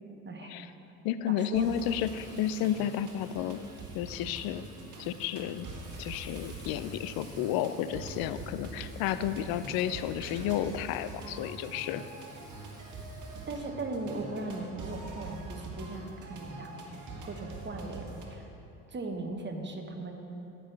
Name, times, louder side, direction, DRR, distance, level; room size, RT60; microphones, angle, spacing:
voice 1, 0.2-0.6 1.3-1.8 13.5-16.7 17.2-18.4 18.9-20.2, right 3 dB, 25° right, 3 dB, 1.2 m, -38 dB
voice 2, 1.0-3.6 3.9-4.6 5.0-5.7 6.0-12.1, left 10 dB, 60° left, 13 dB, 0.5 m, -32 dB
sound 1, 1.5-18.3, right 2 dB, 45° right, 1.7 m, -44 dB
Frying (food), 1.6-13.6, right 1 dB, 10° right, 2.3 m, -56 dB
14.5 x 6.2 x 3.3 m, 2.9 s
hypercardioid pair, 65°, 40 cm